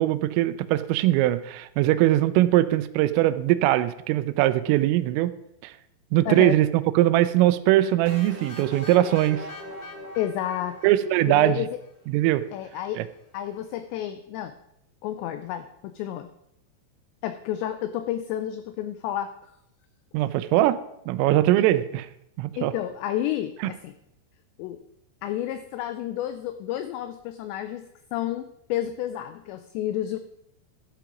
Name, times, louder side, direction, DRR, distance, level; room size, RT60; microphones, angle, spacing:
voice 1, 0.0-5.3 5.6-5.7 6.1-6.7 7.0-9.5 10.8-11.6 12.1-12.4 13.0-13.1 20.1-20.8 21.1-22.1 22.4-22.7, right 15 dB, 90° right, 14 dB, 3.3 m, -21 dB
voice 2, 6.3-6.6 10.2-10.8 11.3-11.8 12.5-13.0 13.3-14.6 15.0-16.3 17.2-19.5 22.6-23.9 24.6-24.8 25.2-30.2, left 12 dB, 90° left, 10 dB, 2.5 m, -30 dB
sound 1, 8.0-11.8, left 1 dB, 40° left, 1.3 m, -41 dB
13.0 x 7.5 x 5.1 m, 0.79 s
omnidirectional pair, 5.7 m